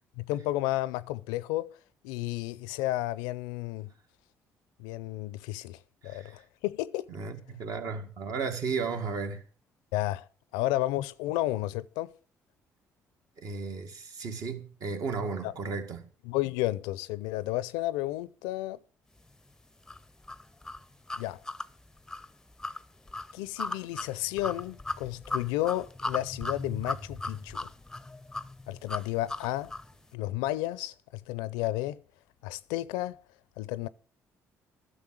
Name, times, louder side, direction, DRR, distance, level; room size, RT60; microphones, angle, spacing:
voice 1, 0.2-1.8 2.0-3.9 4.8-7.1 9.9-10.3 10.5-12.1 15.4-15.5 16.3-18.8 21.2-21.4 23.3-27.7 28.7-29.7 30.1-32.0 32.4-33.2 33.6-33.9, left 16 dB, 85° left, 0.5 m, -32 dB
voice 2, 7.1-9.4 13.4-16.1, right 5 dB, 60° right, 2.0 m, -34 dB
sound 1, 19.9-29.9, left 2 dB, 10° left, 0.6 m, -37 dB
11.0 x 6.6 x 7.5 m
supercardioid pair, 65°, 7 cm